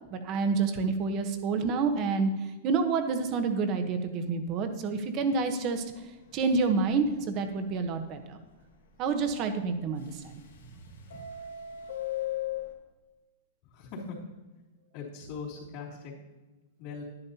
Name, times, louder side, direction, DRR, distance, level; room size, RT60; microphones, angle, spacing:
voice 1, 0.1-2.3 2.6-5.8 6.3-8.4 9.0-10.4, right 4 dB, 40° right, 7 dB, 1.1 m, -28 dB
Subway metro underground, 5.7-6.0 6.4-6.5 6.8-6.9 7.4-7.5 10.0-10.7 11.0-12.7, left 10 dB, 90° left, 1.6 m, -36 dB
voice 2, 13.7-14.2 14.9-16.1 16.8-17.0, left 5 dB, 50° left, -5 dB, 3.4 m, -40 dB
10.5 x 10.5 x 2.9 m, 1.2 s
hypercardioid pair, 130°, 0 cm